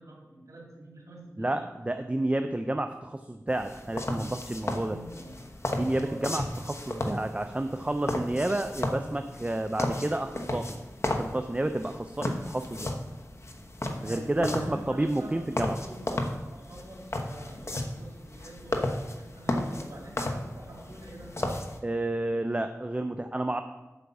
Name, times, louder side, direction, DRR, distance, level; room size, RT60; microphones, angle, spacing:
voice 1, 0.0-1.6 4.8-5.6 6.0-6.3 14.0-21.6, right 1 dB, 80° right, -1 dB, 2.6 m, -46 dB
voice 2, 1.4-5.0 5.7-10.8 11.0-12.9 14.0-15.8 21.8-23.6, right 1 dB, 25° right, 7 dB, 0.5 m, -30 dB
sound 1, 3.5-21.8, left 1 dB, 55° left, 1.0 m, -34 dB
8.2 x 5.1 x 7.1 m, 1.1 s
wide cardioid pair, 60°, 6 cm